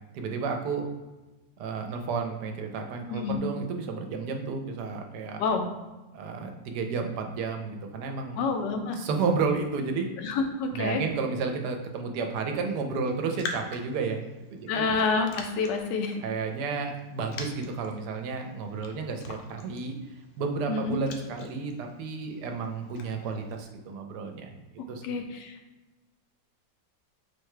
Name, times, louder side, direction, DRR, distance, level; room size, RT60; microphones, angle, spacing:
voice 1, 0.1-0.9 1.6-5.4 6.1-8.4 9.0-10.1 10.7-14.2 14.5-14.9 16.2-19.9 20.4-24.5 24.9-25.0, right 4 dB, 75° right, 4 dB, 1.2 m, -31 dB
voice 2, 8.4-9.0 10.2-11.0 14.7-16.2 20.7-21.0 25.0-25.5, left 4 dB, 90° left, 4 dB, 1.3 m, -28 dB
Raindrop, 13.0-23.6, left 4 dB, 70° left, 1.0 m, -45 dB
4.4 x 2.2 x 4.7 m, 1.1 s
omnidirectional pair, 1.8 m